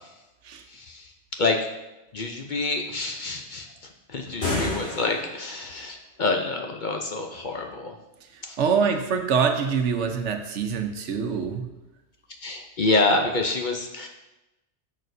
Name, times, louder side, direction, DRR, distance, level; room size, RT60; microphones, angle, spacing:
voice 1, 2.1-3.7 4.1-7.9 12.4-14.1, left 3 dB, 50° left, 3 dB, 0.7 m, -27 dB
sound 1, 4.2-5.5, left 2 dB, 65° left, 2.5 m, -29 dB
voice 2, 8.6-11.6, right 6 dB, 75° right, 5 dB, 1.1 m, -24 dB
10.5 x 6.4 x 2.7 m, 1.0 s
omnidirectional pair, 1.2 m